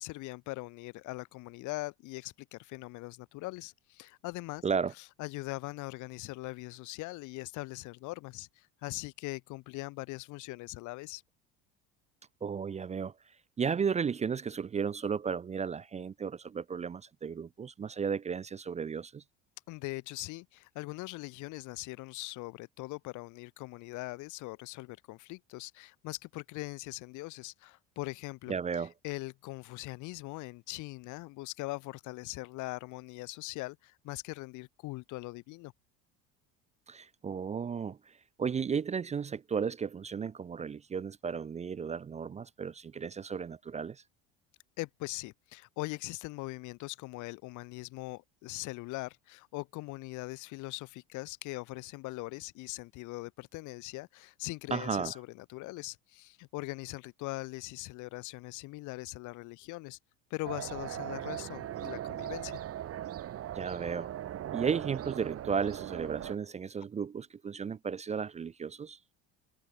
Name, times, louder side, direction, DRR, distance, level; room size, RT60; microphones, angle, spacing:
voice 1, 0.0-4.6 5.2-11.2 19.7-35.7 44.8-60.0 60.3-62.6, left 22 dB, 65° left, 1.2 m, -41 dB
voice 2, 4.6-4.9 12.4-13.1 13.6-19.2 28.5-28.9 36.9-44.0 54.7-55.2 63.5-64.1 64.5-69.0, right 6 dB, 20° right, 0.5 m, -34 dB
sound 1, 60.4-66.4, right 12 dB, 45° right, 2.2 m, -39 dB
supercardioid pair, 110°, 33 cm